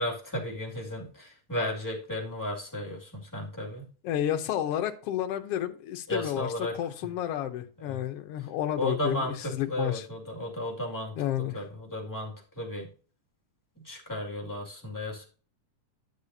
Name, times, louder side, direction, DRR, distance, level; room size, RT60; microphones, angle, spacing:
voice 1, 0.0-3.8 6.1-6.7 7.8-8.0 8.8-11.1 11.5-12.9 13.8-15.3, left 1 dB, 10° left, -1 dB, 1.6 m, -34 dB
voice 2, 4.0-10.1 11.2-11.6, left 11 dB, 75° left, 7 dB, 1.4 m, -31 dB
11.5 x 6.8 x 2.8 m, 0.39 s
omnidirectional pair, 3.7 m